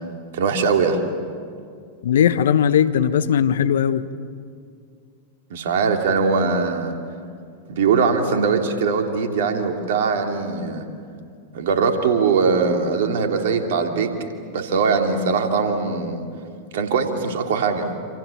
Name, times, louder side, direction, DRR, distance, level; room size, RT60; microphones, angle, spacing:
voice 1, 0.3-1.0 5.5-6.9 7.7-10.8 11.5-14.1 14.5-16.2 16.7-17.9, right 5 dB, 65° right, 3 dB, 3.1 m, -21 dB
voice 2, 2.0-4.1, left 8 dB, 70° left, 13 dB, 1.1 m, -18 dB
28.0 x 27.5 x 7.3 m, 2.3 s
hypercardioid pair, 95°, 0 cm